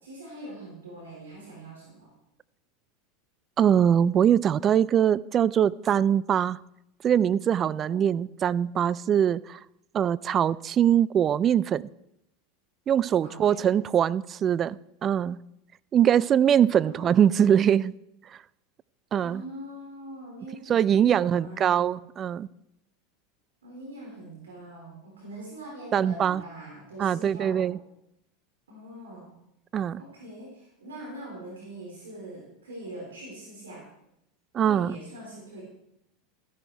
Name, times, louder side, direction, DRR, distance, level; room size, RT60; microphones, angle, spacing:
voice 1, 0.0-2.1 7.9-8.0 13.2-13.8 16.8-17.1 19.2-21.9 23.6-27.7 28.7-29.3 30.0-33.8 34.6-35.6, right 1 dB, 85° right, -2 dB, 3.8 m, -43 dB
voice 2, 3.6-6.6 7.0-9.6 9.9-11.8 12.9-15.4 15.9-17.9 19.1-19.4 20.7-22.5 25.9-26.4 27.0-27.8 29.7-30.0 34.5-35.0, right 9 dB, 35° right, 21 dB, 0.4 m, -22 dB
13.5 x 11.0 x 4.6 m, 0.81 s
hypercardioid pair, 90°, 0 cm